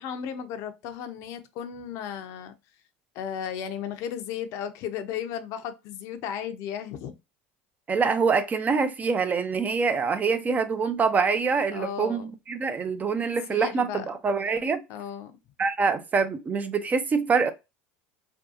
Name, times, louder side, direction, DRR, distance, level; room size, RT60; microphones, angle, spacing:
voice 1, 0.0-2.5 3.1-7.1 11.7-12.3 13.1-14.1 14.9-15.4, left 8 dB, 60° left, 0.5 m, -35 dB
voice 2, 7.9-12.2 12.5-14.8 15.6-17.5, right 5 dB, 25° right, 0.4 m, -25 dB
2.7 x 2.3 x 2.4 m
hypercardioid pair, 85°, 6 cm